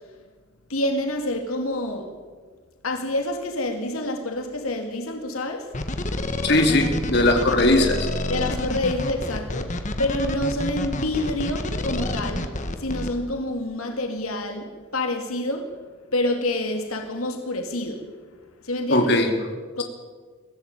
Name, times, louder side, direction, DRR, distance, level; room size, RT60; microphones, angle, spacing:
voice 1, 0.7-2.2 2.8-5.7 8.3-12.5 12.8-15.8 16.1-18.1 18.6-19.1 19.8-19.9, left 1 dB, 80° left, 2.5 m, -27 dB
sound 1, 5.7-13.1, left 1 dB, 35° left, 1.7 m, -28 dB
voice 2, 6.4-8.0 18.9-19.3, left 1 dB, 50° left, 3.2 m, -19 dB
22.0 x 15.5 x 9.0 m
head